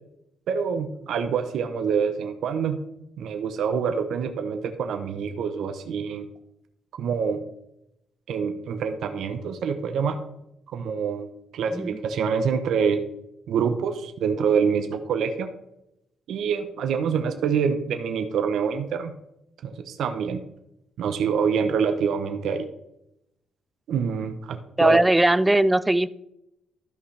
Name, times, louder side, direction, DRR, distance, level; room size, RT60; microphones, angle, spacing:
voice 1, 0.5-2.8 3.2-6.3 7.0-7.4 8.3-10.2 10.7-11.3 11.5-13.0 13.5-15.5 16.3-19.1 19.6-20.4 21.0-22.7 23.9-25.0, right 6 dB, 75° right, 7 dB, 0.7 m, -26 dB
voice 2, 24.8-26.1, right 1 dB, 10° right, 16 dB, 0.3 m, -19 dB
12.5 x 5.5 x 3.3 m, 0.83 s
cardioid pair, 105°, 0 cm